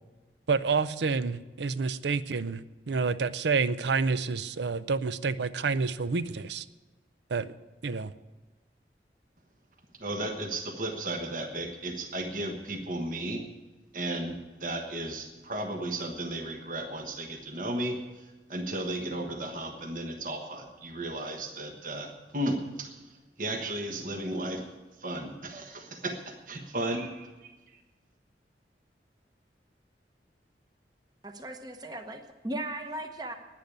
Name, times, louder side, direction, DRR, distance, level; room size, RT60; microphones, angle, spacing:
voice 1, 0.5-6.6 7.3-7.5 7.8-8.1, right 4 dB, 80° right, 15 dB, 0.5 m, -29 dB
voice 2, 10.0-13.4 13.9-23.1 23.4-24.7 25.0-27.5, right 1 dB, 50° right, 4 dB, 1.3 m, -34 dB
voice 3, 31.2-33.3, right 1 dB, 20° right, 6 dB, 0.9 m, -37 dB
10.5 x 10.0 x 9.8 m, 1.2 s
head